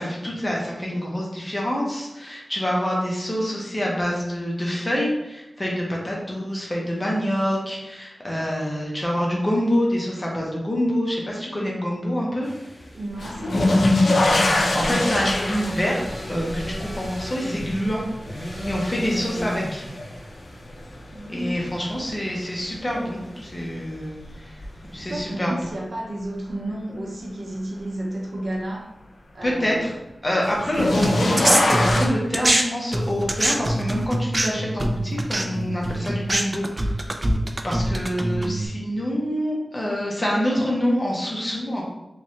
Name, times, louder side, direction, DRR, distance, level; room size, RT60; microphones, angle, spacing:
voice 1, 0.0-12.5 14.5-18.0 18.7-19.8 21.3-24.2 24.9-25.5 29.4-29.9 30.2-37.1 37.6-41.8, equal, 25° left, -3 dB, 1.0 m, -26 dB
sound 1, 12.4-25.3, equal, 60° left, 1.4 m, -37 dB
voice 2, 12.9-14.1 14.8-15.4 21.1-21.9 24.9-28.9 29.3-29.9 30.8-31.0, right 1 dB, 65° right, -1 dB, 0.7 m, -32 dB
sound 2, 13.2-20.2 20.7-21.3 22.9-23.0 24.6-24.7 30.4-32.1, left 2 dB, 80° left, 0.5 m, -23 dB
sound 3, 31.0-32.6 32.9-38.7, right 1 dB, 30° right, 0.4 m, -23 dB
3.4 x 3.1 x 2.8 m, 0.96 s
wide cardioid pair, 105°, 0 cm